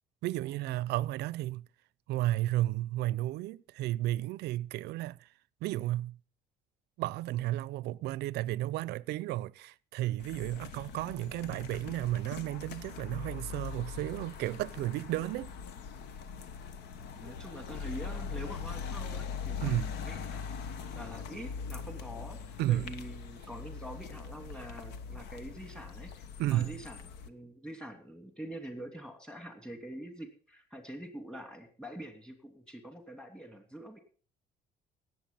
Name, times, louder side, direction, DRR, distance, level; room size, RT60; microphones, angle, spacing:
voice 1, 0.2-1.7 2.1-5.3 5.6-6.2 7.0-15.5 19.6-19.9 22.6-22.9 26.4-26.7, right 15 dB, 80° right, 0.5 m, -33 dB
sound 1, 10.2-27.3, left 6 dB, 85° left, 1.2 m, -41 dB
voice 2, 16.9-19.7 20.0-20.5 20.9-27.0 27.3-34.0, right 1 dB, 5° left, 2.6 m, -45 dB
17.5 x 7.9 x 5.5 m
cardioid pair, 110°, 17 cm